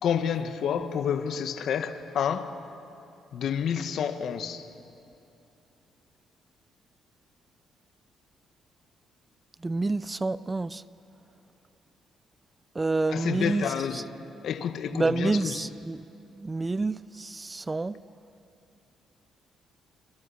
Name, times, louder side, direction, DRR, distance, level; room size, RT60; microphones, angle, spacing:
voice 1, 0.0-2.6 3.3-4.7 13.1-14.1 14.4-15.7, left 8 dB, 70° left, 1.6 m, -29 dB
voice 2, 9.6-10.8 12.8-13.7 14.9-16.0 16.4-18.0, right 3 dB, 20° right, 0.6 m, -28 dB
28.5 x 28.0 x 7.2 m
cardioid pair, 90°, 0 cm